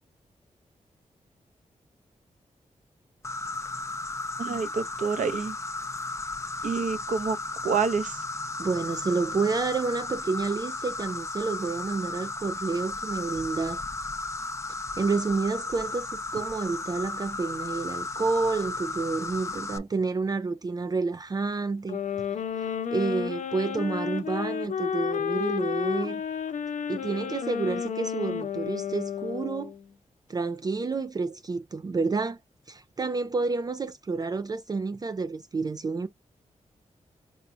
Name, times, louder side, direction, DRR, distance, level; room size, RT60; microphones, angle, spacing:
Insect, 3.2-19.8, left 3 dB, 25° left, 0.5 m, -35 dB
voice 1, 4.4-5.6 6.6-7.4 7.6-8.2, right 5 dB, 85° right, 0.8 m, -28 dB
voice 2, 8.6-13.8 15.0-22.0 22.6-26.2 26.9-29.7 30.3-32.4 32.7-36.1, right 4 dB, 30° right, 0.4 m, -29 dB
sound 1, 21.9-29.9, left 8 dB, 80° left, 0.7 m, -31 dB
4.7 x 2.2 x 3.8 m
wide cardioid pair, 145°, 13 cm